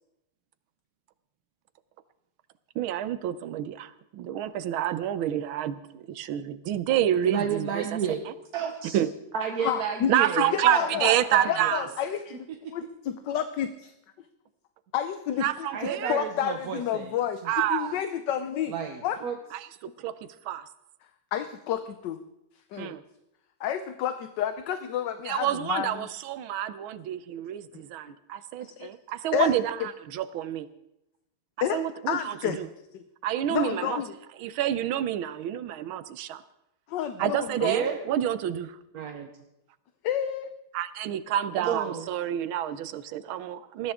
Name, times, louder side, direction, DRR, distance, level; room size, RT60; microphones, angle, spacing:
voice 1, 2.7-7.8 8.9-9.1 10.1-11.8 15.4-16.3 17.4-18.0 19.5-19.7 20.0-20.6 22.8-23.0 25.2-30.7 31.7-32.7 33.2-34.0 34.4-36.4 37.2-38.8 40.7-43.9, right 11 dB, 75° right, 14 dB, 1.5 m, -28 dB
voice 2, 7.2-8.2 8.5-9.0 9.3-11.7 15.7-17.2 18.7-19.3 37.6-38.0 38.9-39.3 41.7-42.1, right 7 dB, 55° right, 4 dB, 1.2 m, -31 dB
voice 3, 9.6-11.1 11.5-12.4 12.7-13.9 14.9-17.4 17.7-18.7 19.0-19.2 21.3-22.2 22.7-23.0 23.6-26.0 28.6-28.9 29.3-29.5 31.6-32.6 32.9-33.0 33.5-34.1 36.9-37.7 40.0-40.5, left 10 dB, 65° left, 10 dB, 1.2 m, -30 dB
20.5 x 14.5 x 3.6 m, 0.85 s
omnidirectional pair, 2.3 m